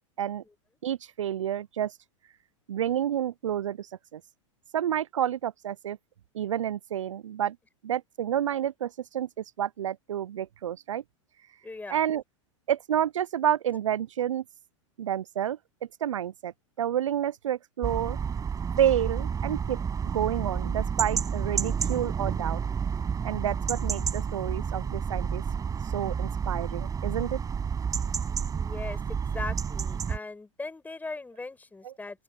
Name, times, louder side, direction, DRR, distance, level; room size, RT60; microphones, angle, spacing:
voice 1, 0.8-1.9 2.7-4.2 4.7-6.0 6.3-7.6 7.8-11.0 11.9-12.2 12.7-14.4 15.0-15.6 16.0-16.5 16.8-18.2 18.8-19.8 20.1-22.6 23.2-25.4 25.9-27.4 31.8-31.9, right 10 dB, 75° right, 0.6 m, -29 dB
voice 2, 11.6-12.0 28.6-32.2, left 3 dB, 10° left, 7.5 m, -39 dB
sound 1, 17.8-30.2, right 6 dB, 20° right, 7.0 m, -30 dB
open air
hypercardioid pair, 95°, 16 cm